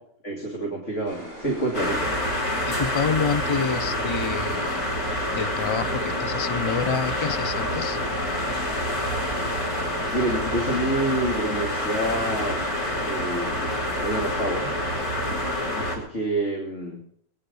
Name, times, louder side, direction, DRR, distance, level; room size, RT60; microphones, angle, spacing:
voice 1, 0.2-2.2 10.1-12.7 13.0-14.7 15.7-17.0, right 1 dB, 55° left, -1 dB, 3.1 m, -28 dB
sound 1, 1.0-15.8, equal, 40° right, 8.3 m, -41 dB
sound 2, 1.7-16.0, left 1 dB, 80° left, 4.8 m, -27 dB
voice 2, 2.7-4.8 5.3-8.0, left 6 dB, 40° left, 12 dB, 0.4 m, -28 dB
21.0 x 10.5 x 5.5 m, 0.66 s
omnidirectional pair, 1.5 m